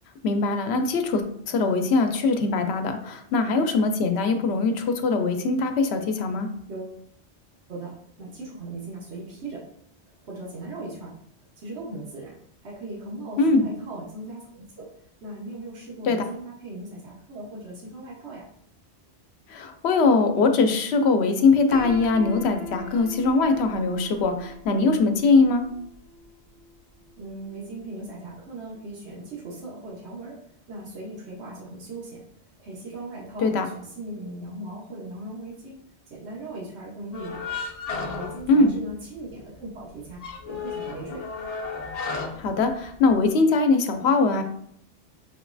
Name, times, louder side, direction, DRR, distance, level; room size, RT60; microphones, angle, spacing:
voice 1, 0.2-6.5 13.4-13.7 16.0-16.2 19.5-25.6 33.4-33.7 38.5-38.7 42.4-44.4, left 3 dB, 75° left, 6 dB, 0.8 m, -21 dB
voice 2, 6.7-7.0 7.7-9.7 10.0-11.1 11.6-12.3 12.6-14.9 15.2-18.4 27.2-30.4 30.7-35.8 36.1-37.4 37.9-41.2, right 2 dB, 90° right, -4 dB, 1.3 m, -38 dB
Piano, 21.7-27.6, left 2 dB, 75° right, 1.6 m, -41 dB
sound 1, 37.1-39.2 39.5-39.6 40.0-43.2, left 4 dB, 45° left, 0.6 m, -34 dB
5.7 x 3.0 x 2.5 m, 0.68 s
omnidirectional pair, 1.1 m